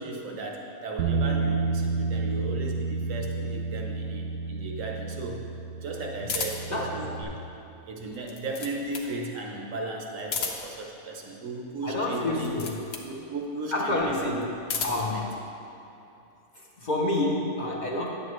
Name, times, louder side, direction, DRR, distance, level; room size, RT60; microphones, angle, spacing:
voice 1, 0.0-5.4 5.8-7.4 7.9-12.5 13.0-14.4 14.7-15.2, right 2 dB, 65° right, 0 dB, 1.3 m, -36 dB
Bass guitar, 1.0-7.2, right 4 dB, 90° right, 1.2 m, -30 dB
sound 1, 6.3-6.8 8.1-9.1 10.2-10.8 12.3-13.1 14.4-15.1, left 5 dB, 75° left, 1.2 m, -33 dB
voice 2, 11.8-12.8 13.7-14.4 14.8-15.3 16.8-18.1, left 2 dB, 40° left, -2 dB, 0.7 m, -28 dB
10.0 x 7.9 x 3.1 m, 2.8 s
omnidirectional pair, 1.5 m